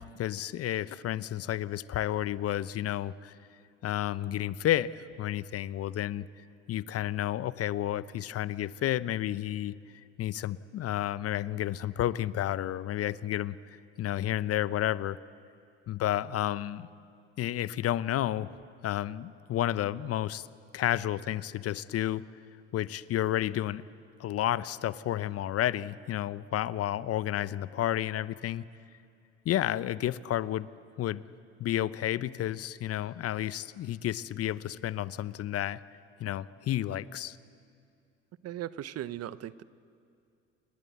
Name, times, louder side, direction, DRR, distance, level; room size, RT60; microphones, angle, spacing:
voice 1, 0.0-3.3 3.8-6.3 6.7-9.8 10.2-15.2 15.9-16.9 17.4-18.6 18.8-20.5 20.7-22.2 22.7-23.8 24.2-28.7 29.4-30.7 31.0-31.2 31.6-35.8 36.2-37.4, left 12 dB, 40° left, 17 dB, 0.8 m, -31 dB
voice 2, 38.4-39.6, right 12 dB, 45° right, 17 dB, 0.9 m, -38 dB
29.0 x 21.0 x 8.2 m, 2.4 s
hypercardioid pair, 70°, 36 cm